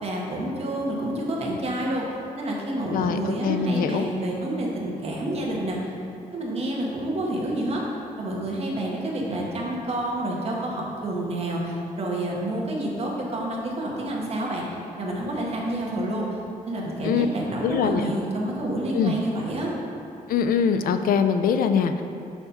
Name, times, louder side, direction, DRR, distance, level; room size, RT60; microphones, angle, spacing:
voice 1, 0.0-2.0 2.4-5.8 6.3-7.8 8.2-14.6 15.0-16.3 16.7-19.7, right 1 dB, 45° right, -2 dB, 1.2 m, -28 dB
voice 2, 2.9-4.1 17.0-17.3 17.6-18.0 18.9-19.1 20.3-22.0, left 7 dB, 85° left, 8 dB, 0.4 m, -23 dB
5.8 x 4.2 x 5.6 m, 2.7 s
wide cardioid pair, 135°, 14 cm